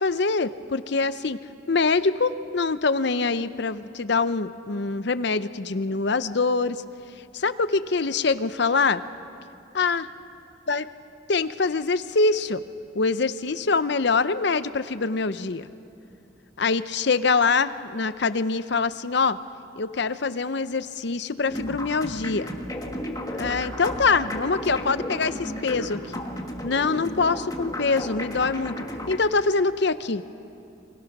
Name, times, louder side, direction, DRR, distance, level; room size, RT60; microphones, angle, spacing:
voice 1, 0.0-1.4 1.7-6.8 7.3-9.0 9.7-10.1 10.7-10.8 11.3-12.6 12.9-15.7 16.6-19.4 19.8-22.5 23.3-26.2 26.6-28.8 29.1-30.2, left 4 dB, 55° left, 13 dB, 0.7 m, -24 dB
sound 1, 21.5-29.2, left 1 dB, 20° left, 1.5 m, -33 dB
29.0 x 25.0 x 6.0 m, 2.7 s
head